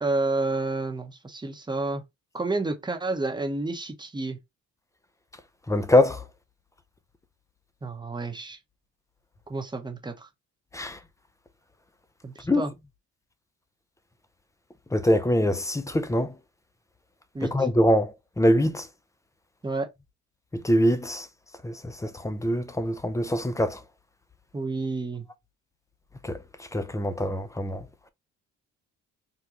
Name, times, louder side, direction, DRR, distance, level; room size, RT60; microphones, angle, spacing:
voice 1, 0.0-2.0 2.3-4.4 7.8-8.6 9.5-10.3 12.2-12.7 17.3-17.7 19.6-19.9 24.5-25.3, right 2 dB, 15° right, 0.8 m, -30 dB
voice 2, 5.7-6.2 10.7-11.0 12.5-12.6 14.9-16.3 17.5-18.1 18.4-18.9 20.6-21.3 21.6-23.8 26.2-26.4 26.7-27.8, left 1 dB, 10° left, 0.5 m, -23 dB
3.7 x 2.2 x 2.8 m
cardioid pair, 90°, 30 cm